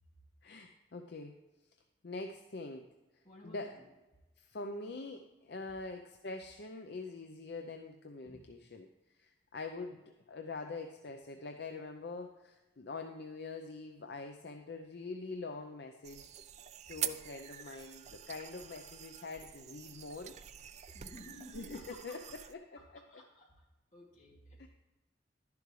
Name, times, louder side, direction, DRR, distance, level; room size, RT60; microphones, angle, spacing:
voice 1, 0.4-1.4 2.0-2.9 3.4-3.7 4.4-8.9 9.2-16.3 16.9-20.3 21.5-22.6 24.6-24.7, left 3 dB, 60° left, 5 dB, 0.6 m, -44 dB
voice 2, 3.2-3.9 8.2-8.4 20.9-22.4 22.7-22.8 23.1-23.6 23.9-24.7, left 1 dB, 40° left, -3 dB, 2.6 m, -55 dB
sound 1, 16.0-22.5, right 11 dB, 35° right, 0.4 m, -45 dB
11.5 x 10.5 x 3.2 m, 1.1 s
head